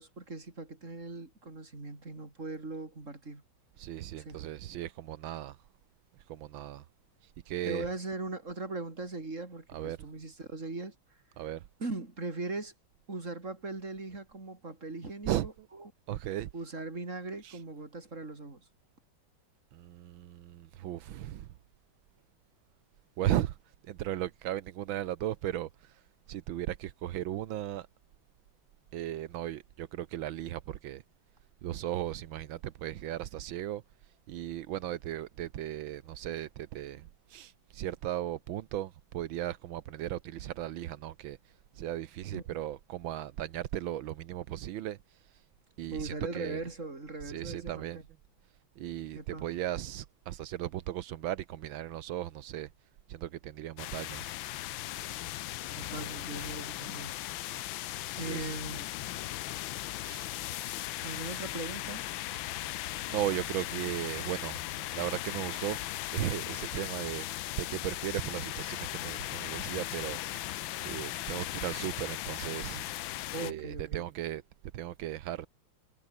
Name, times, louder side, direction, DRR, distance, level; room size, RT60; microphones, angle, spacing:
voice 1, 0.0-3.4 4.2-4.4 7.6-10.9 11.8-12.7 13.1-15.5 15.8-15.9 16.5-18.6 42.3-42.4 45.9-48.0 49.1-49.5 55.7-57.2 57.5-57.6 58.2-58.9 61.0-62.0 73.3-74.1, right 3 dB, 40° right, 4.5 m, -39 dB
voice 2, 3.8-5.6 6.3-6.9 7.2-7.9 9.7-10.1 11.4-11.6 15.3-15.7 16.1-16.5 17.4-17.6 19.7-21.5 23.2-23.6 23.8-26.0 26.3-27.9 28.9-31.0 31.6-33.8 34.3-41.4 41.8-45.4 45.8-46.6 47.2-48.0 48.8-52.7 53.1-54.2 58.2-58.5 60.0-60.3 62.3-62.7 63.1-64.6 64.9-65.9 66.1-70.6 70.9-72.8 73.4-74.4 74.7-75.5, right 13 dB, 85° right, 1.7 m, -36 dB
sound 1, 53.8-73.5, left 15 dB, 85° left, 1.5 m, -38 dB
omnidirectional pair, 2.1 m